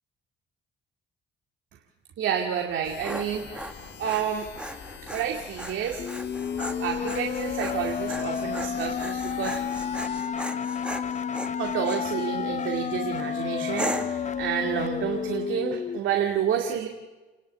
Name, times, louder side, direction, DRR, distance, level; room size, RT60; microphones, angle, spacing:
voice 1, 2.2-4.7 5.1-6.1 6.8-9.6 11.6-16.9, right 8 dB, 75° right, 3 dB, 2.3 m, -29 dB
Dog, 2.7-12.1 12.6-13.1 13.8-14.3, equal, 5° right, 1.9 m, -37 dB
sound 1, 2.8-10.2, left 7 dB, 60° left, 3.2 m, -45 dB
sound 2, 6.0-16.0, left 7 dB, 35° left, 0.7 m, -31 dB
30.0 x 11.0 x 8.2 m, 1.2 s
cardioid pair, 90°, 20 cm